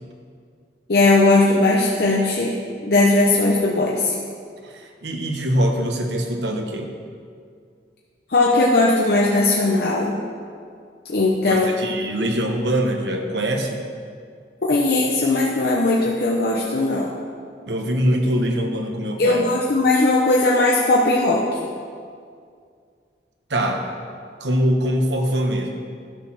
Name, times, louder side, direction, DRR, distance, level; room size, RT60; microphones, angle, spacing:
voice 1, 0.9-2.5 2.8-4.2 8.3-10.2 11.1-11.7 14.6-17.1 19.2-21.4, left 2 dB, 60° left, -3 dB, 0.9 m, -18 dB
voice 2, 4.6-6.9 11.4-13.8 17.7-19.5 23.5-23.9 24.4-25.7, equal, 80° right, 3 dB, 1.3 m, -23 dB
12.0 x 6.5 x 5.9 m, 2.2 s
head